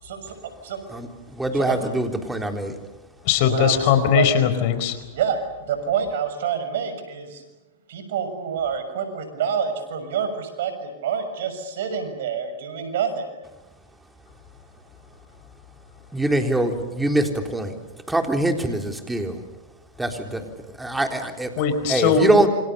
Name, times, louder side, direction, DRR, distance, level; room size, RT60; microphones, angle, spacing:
voice 1, 0.0-0.3 0.6-0.8 1.5-1.8 3.5-4.2 5.1-7.4 7.9-13.2, right 7 dB, 70° right, 9 dB, 6.7 m, -27 dB
voice 2, 0.9-2.8 16.1-17.7 18.1-19.4 20.0-20.5 20.8-21.5 21.9-22.5, right 1 dB, 5° right, 4 dB, 3.9 m, -23 dB
voice 3, 3.2-5.0 21.6-22.3, left 8 dB, 55° left, 11 dB, 4.5 m, -19 dB
28.5 x 26.5 x 7.0 m, 1.1 s
hypercardioid pair, 110°, 0 cm